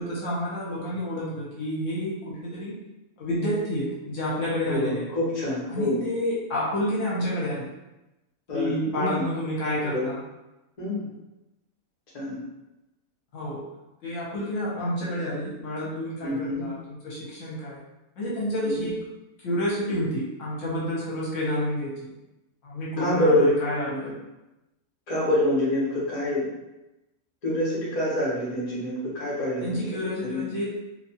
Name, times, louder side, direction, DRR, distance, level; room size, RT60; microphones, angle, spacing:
voice 1, 0.0-2.8 3.2-5.0 5.7-7.7 8.5-10.2 13.3-13.6 14.0-17.8 18.2-19.0 19.4-22.1 22.6-24.1 29.6-30.7, equal, 60° left, -6 dB, 1.1 m, -29 dB
voice 2, 4.6-6.0 8.5-9.2 9.8-10.0 10.8-11.1 12.1-12.4 16.2-16.7 18.6-18.9 23.0-23.5 24.0-24.1 25.1-26.5 27.4-29.8 30.2-30.4, left 1 dB, 35° left, -6 dB, 0.7 m, -26 dB
2.6 x 2.2 x 2.7 m, 0.97 s
omnidirectional pair, 1.6 m